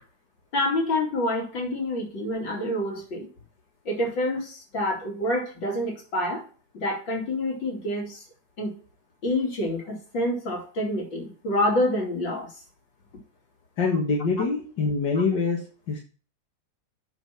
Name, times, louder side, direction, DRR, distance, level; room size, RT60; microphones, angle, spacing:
voice 1, 0.5-3.3 3.9-6.4 6.7-8.2 8.6-8.7 9.2-12.5, left 1 dB, 90° left, -1 dB, 3.4 m, -27 dB
voice 2, 13.8-15.6 15.9-16.0, left 4 dB, 70° left, -2 dB, 2.4 m, -24 dB
8.2 x 5.8 x 5.8 m, 0.38 s
omnidirectional pair, 2.0 m